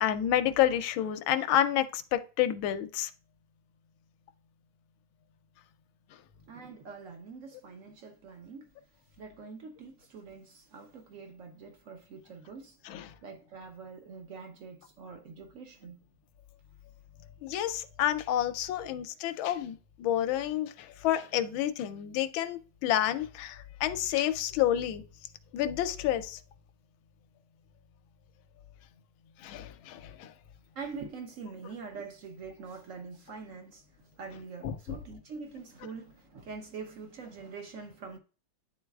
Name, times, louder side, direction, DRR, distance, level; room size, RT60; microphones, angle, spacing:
voice 1, 0.0-3.1 12.9-13.1 17.4-25.0 25.5-26.4 29.4-30.3 34.6-35.0, left 11 dB, 80° left, 1.4 m, -29 dB
voice 2, 6.5-8.7 9.2-12.8 13.2-16.0 18.8-18.9 30.8-33.8 34.2-38.2, right 5 dB, 70° right, 0.7 m, -44 dB
10.5 x 3.9 x 2.3 m
omnidirectional pair, 2.2 m